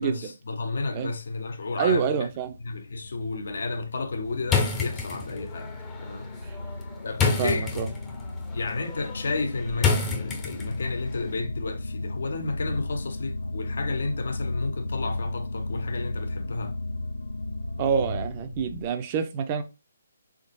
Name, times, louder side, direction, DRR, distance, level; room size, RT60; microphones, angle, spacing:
voice 1, 0.0-2.3 2.6-5.7 6.0-6.3 7.0-7.9 8.5-16.7, left 3 dB, 65° left, 0.7 m, -32 dB
sound 1, 1.6-18.9, left 2 dB, 90° left, 0.4 m, -35 dB
voice 2, 1.8-2.5 6.4-6.6 7.4-7.9 17.8-19.6, right 7 dB, 30° right, 0.6 m, -27 dB
sound 2, 4.4-10.9, left 5 dB, 15° left, 0.7 m, -29 dB
3.9 x 3.6 x 2.6 m
figure-of-eight pair, 150°, 0 cm